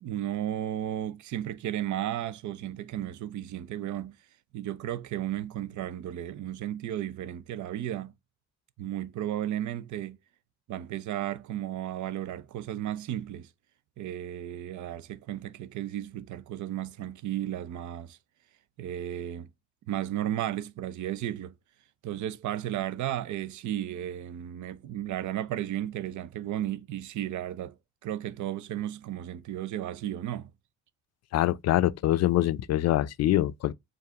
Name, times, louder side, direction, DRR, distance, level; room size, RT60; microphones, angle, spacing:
voice 1, 0.0-4.2 4.5-8.1 8.8-10.2 10.7-13.5 14.0-18.2 18.8-19.5 19.9-21.5 22.0-27.8 28.0-30.5, right 12 dB, 75° right, 0.6 m, -34 dB
voice 2, 31.3-33.7, left 13 dB, 60° left, 0.4 m, -24 dB
4.7 x 2.5 x 3.4 m
cardioid pair, 90°, 30 cm